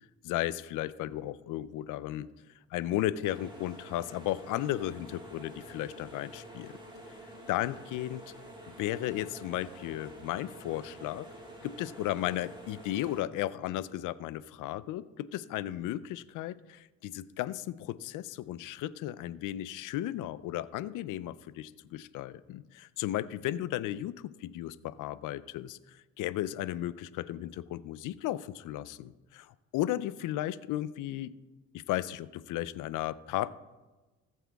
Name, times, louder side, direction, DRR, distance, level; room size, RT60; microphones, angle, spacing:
voice 1, 0.2-2.3 2.7-6.7 7.5-8.2 8.8-11.3 11.6-31.3 31.7-33.5, left 14 dB, 90° left, 17 dB, 0.5 m, -35 dB
sound 1, 3.2-13.2, right 1 dB, 15° right, 2.9 m, -48 dB
18.5 x 7.8 x 3.5 m, 1.2 s
cardioid pair, 90°, 30 cm